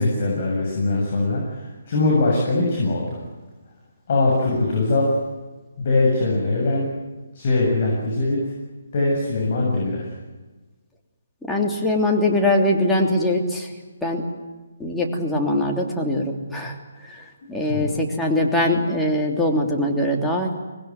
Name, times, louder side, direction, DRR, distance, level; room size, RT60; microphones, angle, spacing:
voice 1, 0.0-3.2 4.1-5.1 5.8-6.9 7.3-8.5 8.9-10.1 17.6-18.0, left 2 dB, 45° left, -2 dB, 7.6 m, -21 dB
voice 2, 11.5-13.7 14.0-14.2 14.8-16.2 16.5-16.7 17.1-17.2 17.5-20.6, left 1 dB, 5° left, -2 dB, 3.1 m, -22 dB
25.0 x 20.0 x 9.6 m, 1.2 s
figure-of-eight pair, 140°, 0 cm